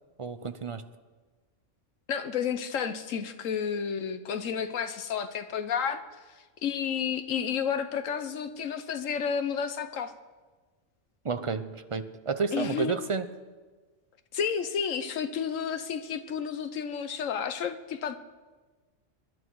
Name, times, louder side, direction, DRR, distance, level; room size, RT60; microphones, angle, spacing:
voice 1, 0.2-0.8 11.2-13.3, right 5 dB, 35° right, 10 dB, 0.5 m, -31 dB
voice 2, 2.1-6.0 6.6-10.1 12.5-12.9 14.3-18.1, left 7 dB, 90° left, 10 dB, 1.3 m, -31 dB
23.5 x 11.0 x 4.7 m, 1.3 s
omnidirectional pair, 1.3 m